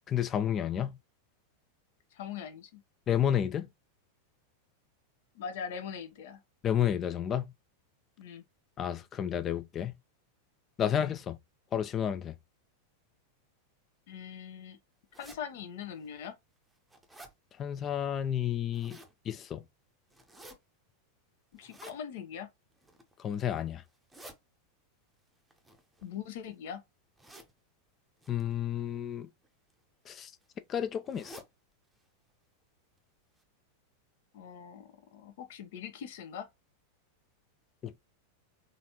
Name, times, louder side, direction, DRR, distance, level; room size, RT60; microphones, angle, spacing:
voice 1, 0.1-1.0 3.1-3.7 6.6-7.5 8.8-9.9 10.8-11.4 11.7-12.3 17.6-19.0 19.3-19.6 23.2-23.8 28.3-29.3 30.1-30.3 30.7-31.4 37.8-38.0, left 9 dB, 25° left, 0.5 m, -31 dB
voice 2, 2.1-2.8 5.3-6.4 8.2-8.4 14.1-14.8 15.2-16.4 21.5-22.5 26.0-26.8 34.3-36.5, left 7 dB, 55° left, 1.0 m, -42 dB
sound 1, 15.1-15.4 16.0-16.1 16.6-17.3 18.5-19.1 20.1-20.6 21.6-22.0 22.7-23.1 23.9-24.4 25.5-26.5 27.2-27.5 28.2-28.4 29.4-29.7 30.1-30.2 30.4-30.5 31.1-31.5 31.9-32.0 32.3-32.4 33.0-33.1 33.4-33.5, right 1 dB, 5° right, 0.8 m, -52 dB
4.0 x 3.3 x 2.9 m
figure-of-eight pair, 90°, 0 cm